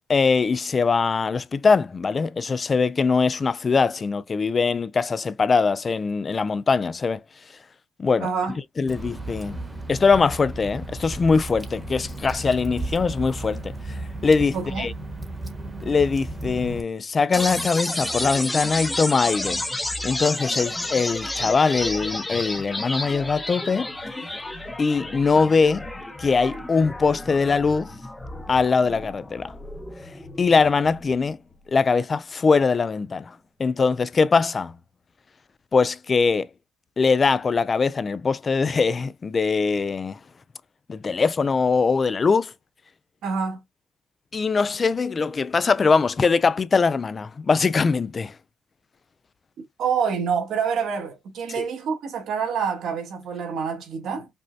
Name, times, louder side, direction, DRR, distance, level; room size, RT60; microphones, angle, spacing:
voice 1, 0.1-7.2 8.0-8.3 8.8-9.6 9.9-14.0 14.2-14.9 15.8-19.6 20.0-23.9 24.8-25.9 26.2-27.9 28.5-29.5 30.4-31.4 31.7-34.8 35.7-36.5 37.0-40.2 40.9-42.5 44.3-48.3 51.6-51.7, left 4 dB, 35° left, 0.4 m, -22 dB
voice 2, 8.2-8.6 14.5-14.9 43.2-43.6 49.8-54.3, right 6 dB, 75° right, 1.9 m, -27 dB
Water / Drip, 8.9-16.8, right 2 dB, 15° right, 1.1 m, -34 dB
sound 1, 17.3-31.3, left 1 dB, 10° left, 0.8 m, -31 dB
5.3 x 2.2 x 2.7 m
cardioid pair, 90°, 0 cm